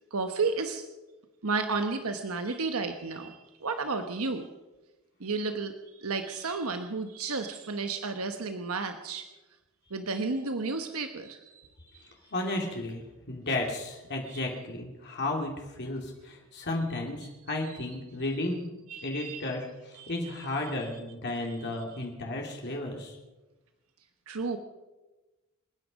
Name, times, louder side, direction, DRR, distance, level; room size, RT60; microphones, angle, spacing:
voice 1, 0.1-0.8 1.4-4.5 5.2-9.2 9.9-11.7 14.3-14.4 17.6-17.9 18.9-19.6 19.9-20.8 21.3-22.0 24.3-24.6, right 4 dB, 80° right, 7 dB, 1.2 m, -33 dB
voice 2, 12.3-18.7 19.0-23.2, left 2 dB, 50° left, 0 dB, 2.7 m, -33 dB
27.5 x 10.0 x 5.3 m, 1.1 s
head